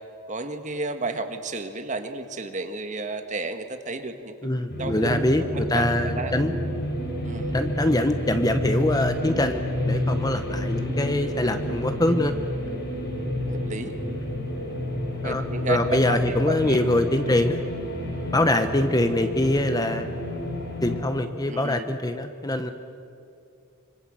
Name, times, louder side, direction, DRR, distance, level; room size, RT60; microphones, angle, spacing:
voice 1, 0.3-4.5 4.8-6.3 7.2-7.6 13.5-13.9 15.2-16.8 17.3-17.4 21.5-21.9, right 3 dB, 35° right, 8 dB, 1.6 m, -32 dB
voice 2, 4.4-6.6 7.5-12.3 15.2-17.6 18.3-20.1 20.8-22.7, left 1 dB, 15° left, 8 dB, 1.0 m, -24 dB
sound 1, 4.7-21.0, left 1 dB, 45° left, 7.9 m, -29 dB
26.0 x 25.0 x 7.8 m, 2.5 s
head